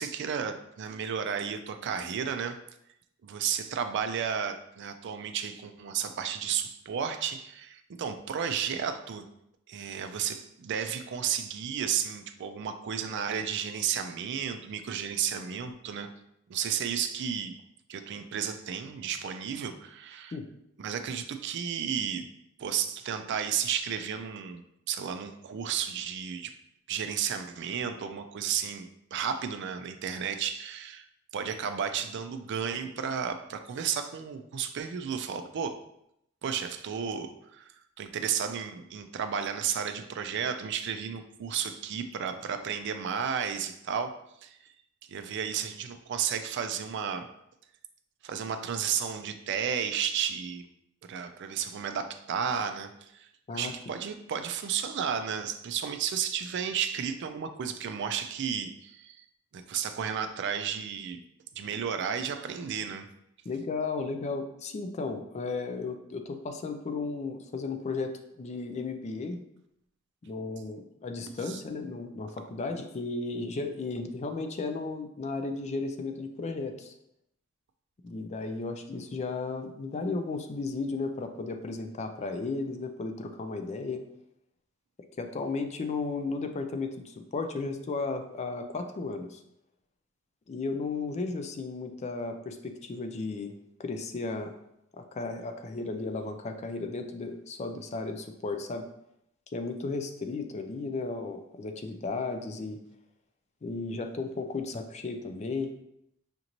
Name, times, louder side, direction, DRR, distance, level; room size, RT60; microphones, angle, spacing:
voice 1, 0.0-2.6 3.2-9.2 9.7-16.1 16.5-17.6 17.9-20.4 20.8-22.3 22.6-26.5 26.9-31.1 31.3-35.8 36.4-44.2 44.4-44.7 45.1-47.3 48.2-50.6 51.1-59.2 59.5-61.2 61.6-63.1 71.4-71.6, right 7 dB, 55° right, 8 dB, 0.4 m, -33 dB
voice 2, 53.5-53.9 63.5-69.4 70.2-76.9 78.0-84.0 85.2-89.4 90.5-93.5 93.8-94.5 95.0-98.9 99.5-102.8 103.6-105.7, left 3 dB, 30° left, 7 dB, 0.3 m, -34 dB
5.1 x 2.6 x 2.9 m, 0.79 s
head